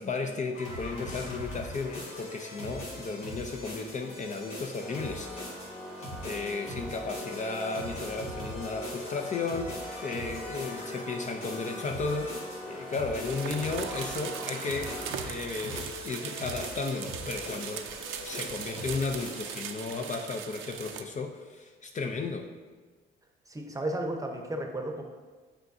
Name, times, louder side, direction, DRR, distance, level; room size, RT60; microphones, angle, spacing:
voice 1, 0.0-5.3 6.2-14.9 15.2-17.9 18.2-22.5, left 4 dB, 40° left, 4 dB, 0.5 m, -34 dB
sound 1, 0.5-19.7, left 1 dB, 85° left, 1.8 m, -41 dB
Organ, 4.8-15.7, left 1 dB, ahead, 1.3 m, -43 dB
sound 2, 13.2-21.0, right 8 dB, 85° right, 0.5 m, -40 dB
voice 2, 23.5-25.0, right 1 dB, 15° right, 3 dB, 0.8 m, -33 dB
7.9 x 5.0 x 2.6 m, 1.4 s
cardioid pair, 90°, 20 cm